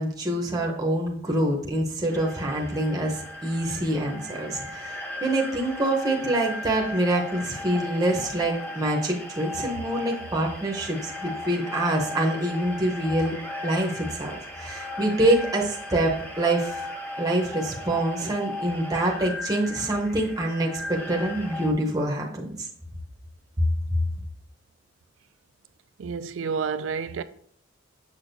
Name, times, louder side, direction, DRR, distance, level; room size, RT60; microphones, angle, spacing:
voice 1, 0.0-13.4 13.6-16.9 17.2-22.7, right 1 dB, 20° right, 0.8 m, -26 dB
sound 1, 2.1-21.7, left 1 dB, 10° left, 0.8 m, -37 dB
voice 2, 26.0-27.2, right 5 dB, 75° right, 0.4 m, -29 dB
7.1 x 6.1 x 2.6 m
head